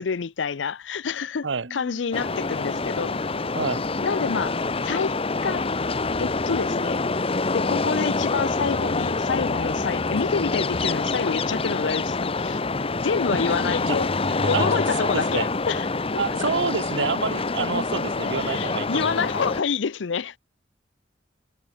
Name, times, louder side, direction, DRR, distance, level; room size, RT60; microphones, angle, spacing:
voice 1, 0.0-3.2 4.0-4.6 4.8-5.7 6.2-7.0 7.5-12.6 13.0-14.1 14.5-15.9 16.1-16.2 18.4-20.3, left 5 dB, 85° left, 0.6 m, -27 dB
Piano, 1.6-7.2, equal, 55° right, 5.6 m, -50 dB
sound 1, 2.1-19.6, left 3 dB, 30° left, 1.0 m, -26 dB
voice 2, 3.5-3.9 13.6-14.0 14.3-14.7 15.0-15.5 16.2-19.1, right 5 dB, 85° right, 0.8 m, -28 dB
head